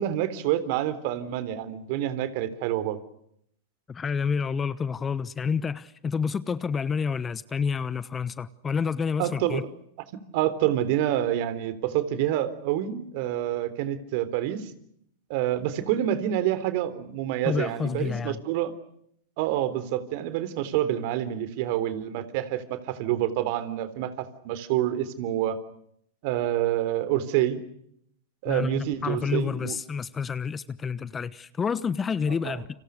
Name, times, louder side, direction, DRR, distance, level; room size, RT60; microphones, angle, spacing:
voice 1, 0.0-3.0 9.2-9.6 10.3-14.7 15.3-18.7 19.4-25.6 26.2-27.6 28.4-29.8 32.4-32.6, right 12 dB, 55° right, 3.6 m, -27 dB
voice 2, 3.9-9.6 17.4-18.4 28.5-32.6, left 6 dB, 20° left, 1.1 m, -29 dB
30.0 x 26.5 x 6.6 m
hypercardioid pair, 110°, 0 cm